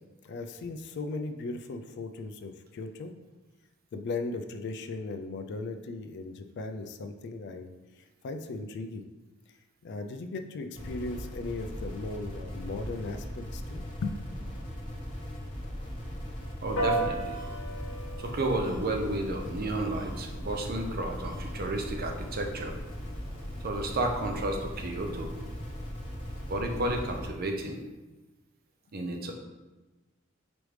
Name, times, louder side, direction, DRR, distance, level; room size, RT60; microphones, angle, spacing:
voice 1, 0.2-3.1 3.9-9.1 9.8-14.2, left 3 dB, 55° left, 7 dB, 0.3 m, -37 dB
sound 1, 10.7-27.3, equal, 25° left, 1.2 m, -39 dB
voice 2, 16.6-17.4 18.2-22.8 23.6-25.4 26.5-27.8 28.9-29.3, right 2 dB, 45° right, 3 dB, 0.6 m, -32 dB
Piano, 16.8-26.5, right 2 dB, 85° left, 1.0 m, -39 dB
sound 2, 17.3-17.5 18.6-18.8 19.9-20.1 21.2-21.4 22.5-22.6, right 2 dB, 30° right, 1.0 m, -53 dB
5.0 x 3.1 x 3.2 m, 1.2 s
head